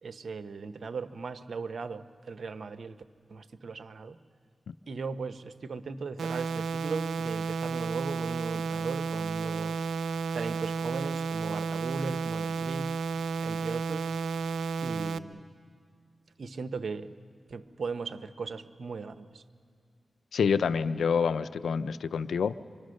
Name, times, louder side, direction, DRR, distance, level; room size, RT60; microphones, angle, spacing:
voice 1, 0.0-3.0 3.3-4.2 4.9-9.9 10.3-12.9 13.4-14.1 14.8-15.5 16.4-17.1 17.5-19.4, right 4 dB, 70° right, 11 dB, 0.9 m, -38 dB
sound 1, 6.2-15.2, right 5 dB, 90° right, 0.5 m, -32 dB
voice 2, 20.3-22.6, left 6 dB, 85° left, 14 dB, 0.5 m, -27 dB
25.0 x 25.0 x 6.5 m, 2.1 s
cardioid pair, 45°, 0 cm